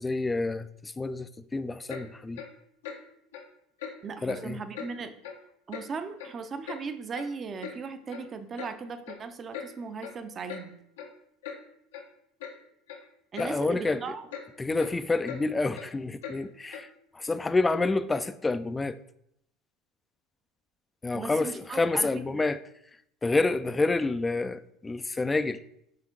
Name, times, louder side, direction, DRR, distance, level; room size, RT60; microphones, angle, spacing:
voice 1, 0.0-2.4 4.2-4.6 13.4-14.0 14.6-16.9 17.1-19.0 21.0-22.6 23.2-25.6, left 3 dB, 15° left, 0.4 m, -28 dB
Clock, 1.9-2.1 2.4-2.5 2.8-3.0 3.3-3.5 3.8-3.9 4.3-4.4 4.7-4.9 5.2-5.4 5.7-5.9 6.2-6.8 7.1-7.2 7.6-7.8 8.1-8.3 8.6-8.7 9.1-9.2 9.5-9.7 10.0-10.2 10.5-10.6 11.0-11.1 11.4-11.6 11.9-12.0 12.4-12.5 12.9-13.0 13.4-13.5 13.8-14.0 14.3-14.5 14.8-14.9 15.3-15.4 15.8-15.9 16.2-16.4 16.7-16.9, left 7 dB, 85° left, 1.0 m, -40 dB
voice 2, 4.0-5.1 5.7-10.7 13.3-14.2 21.1-22.4, right 5 dB, 35° right, 0.7 m, -37 dB
5.8 x 3.7 x 5.0 m
hypercardioid pair, 90°, 0 cm